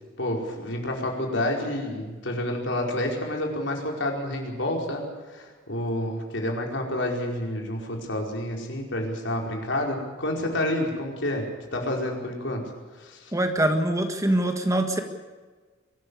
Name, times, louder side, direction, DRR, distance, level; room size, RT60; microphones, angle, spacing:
voice 1, 0.2-11.4 11.7-12.6 12.9-13.3, left 1 dB, 65° left, 1 dB, 4.9 m, -29 dB
voice 2, 13.3-15.0, right 1 dB, 15° right, 6 dB, 1.7 m, -23 dB
23.5 x 14.0 x 8.5 m, 1.4 s
head